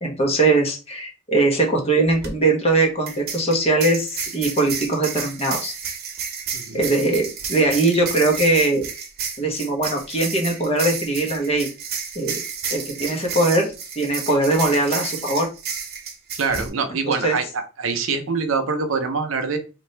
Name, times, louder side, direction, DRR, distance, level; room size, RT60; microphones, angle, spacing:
voice 1, 0.0-5.7 6.7-8.9 9.4-11.7 12.1-12.4 12.7-15.5 17.0-17.3, right 2 dB, 30° left, 0 dB, 1.0 m, -21 dB
sound 1, 2.1-2.3 3.1-16.7, right 6 dB, 50° right, 1.0 m, -31 dB
voice 2, 6.5-6.8 16.4-17.5 17.8-19.6, right 4 dB, 70° right, 6 dB, 0.7 m, -24 dB
4.1 x 2.6 x 3.2 m, 0.33 s
head